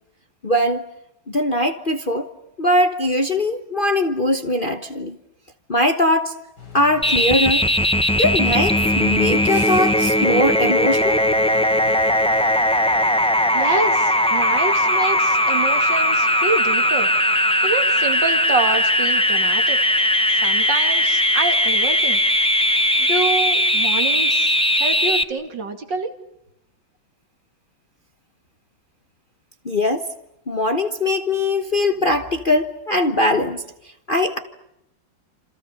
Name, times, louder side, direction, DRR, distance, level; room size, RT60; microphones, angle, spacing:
voice 1, 0.4-0.8 1.3-2.3 2.6-5.2 5.7-6.3 6.7-7.6 8.2-11.2 29.6-30.1 30.5-33.6 34.1-34.4, left 1 dB, 30° left, 7 dB, 1.1 m, -20 dB
sound 1, 6.6-13.5, left 5 dB, 55° left, 6.4 m, -41 dB
sound 2, 7.0-25.2, left 1 dB, 10° left, 0.3 m, -19 dB
voice 2, 13.5-17.1 17.6-19.8 20.4-22.2 23.0-26.1, right 3 dB, 65° right, 6 dB, 3.0 m, -26 dB
29.5 x 27.5 x 6.5 m, 0.82 s
omnidirectional pair, 2.2 m